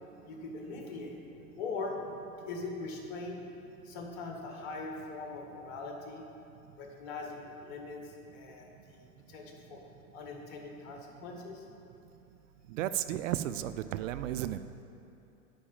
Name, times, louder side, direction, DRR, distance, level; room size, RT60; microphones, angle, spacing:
voice 1, 0.2-1.2 1.5-3.4 3.9-6.3 6.8-9.8 10.1-11.6, left 3 dB, 45° left, 1 dB, 1.8 m, -41 dB
voice 2, 12.7-14.8, right 12 dB, 60° right, 12 dB, 0.5 m, -34 dB
10.0 x 4.8 x 7.6 m, 2.8 s
hypercardioid pair, 105°, 44 cm